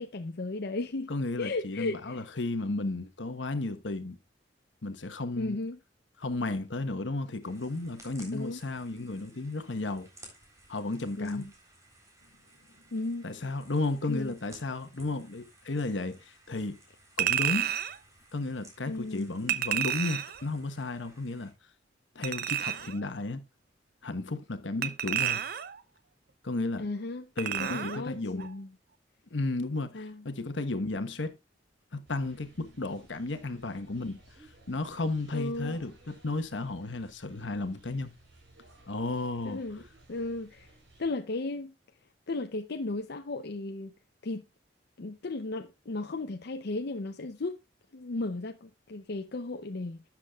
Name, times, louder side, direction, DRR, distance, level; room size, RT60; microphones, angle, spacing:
voice 1, 0.0-1.1 1.4-2.2 5.3-5.8 8.3-8.6 11.2-11.5 12.9-13.3 14.1-14.3 18.9-19.3 26.8-28.7 29.9-30.2 32.9-33.0 35.3-35.8 39.4-39.8 40.1-40.7 41.0-41.7 42.3-43.9 44.2-44.4 45.0-47.6 47.9-50.0, left 2 dB, 60° left, 0.6 m, -35 dB
voice 2, 1.1-4.2 4.8-5.6 6.2-10.1 10.7-11.4 13.2-16.8 17.2-17.7 18.3-21.5 22.1-23.4 24.0-25.4 26.4-26.9 27.4-28.5 29.3-31.3 31.9-34.2 34.7-38.1 38.9-39.6, left 2 dB, 85° left, 1.2 m, -33 dB
sound 1, 7.4-21.5, right 1 dB, 20° right, 3.7 m, -57 dB
Chink clink, 17.2-18.0 19.5-20.4 22.2-23.0 24.8-25.8 27.4-28.0 28.4-28.5, right 10 dB, 55° right, 0.6 m, -30 dB
sound 2, 32.0-41.1, right 1 dB, 85° right, 4.2 m, -58 dB
12.0 x 8.4 x 2.4 m
head